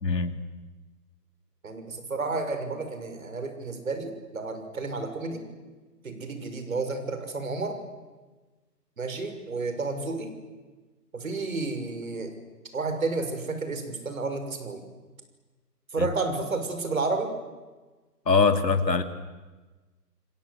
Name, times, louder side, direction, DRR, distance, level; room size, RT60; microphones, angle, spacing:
voice 1, 0.0-0.4 16.0-16.1 18.3-19.0, left 4 dB, 80° left, 7 dB, 2.8 m, -22 dB
voice 2, 1.6-5.4 6.0-7.8 9.0-10.3 11.1-12.3 12.7-14.8 15.9-17.3, right 3 dB, 55° right, 7 dB, 6.2 m, -31 dB
29.0 x 23.5 x 8.3 m, 1.3 s
hypercardioid pair, 165°, 49 cm